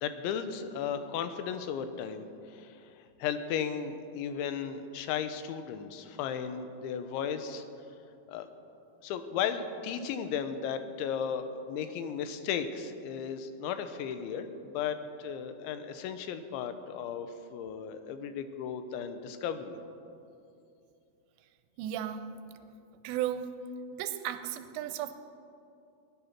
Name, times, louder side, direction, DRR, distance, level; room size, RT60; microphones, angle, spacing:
voice 1, 0.0-2.2 2.5-2.8 3.2-7.6 8.3-8.5 9.0-17.3 17.5-19.8, left 7 dB, 85° left, 9 dB, 3.2 m, -35 dB
voice 2, 21.8-22.3 23.0-23.6 23.9-25.1, right 11 dB, 85° right, 10 dB, 2.8 m, -34 dB
20.0 x 10.5 x 5.9 m, 2.6 s
omnidirectional pair, 5.2 m